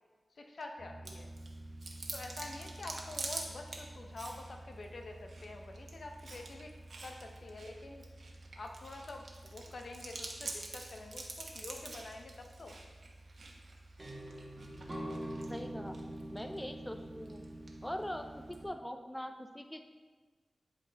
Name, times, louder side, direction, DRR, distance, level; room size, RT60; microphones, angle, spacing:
voice 1, 0.3-1.3 2.1-6.7 7.0-8.1 8.6-12.8, left 2 dB, 70° left, 3 dB, 0.7 m, -47 dB
sound 1, 0.8-18.7, right 1 dB, 30° right, 1.4 m, -48 dB
Chewing mastication, 1.0-18.6, right 3 dB, 70° right, 1.0 m, -48 dB
voice 2, 15.5-16.0 16.3-17.4 17.8-19.8, equal, 10° left, 6 dB, 0.4 m, -42 dB
10.5 x 4.0 x 3.4 m, 1.4 s
cardioid pair, 65°, 0 cm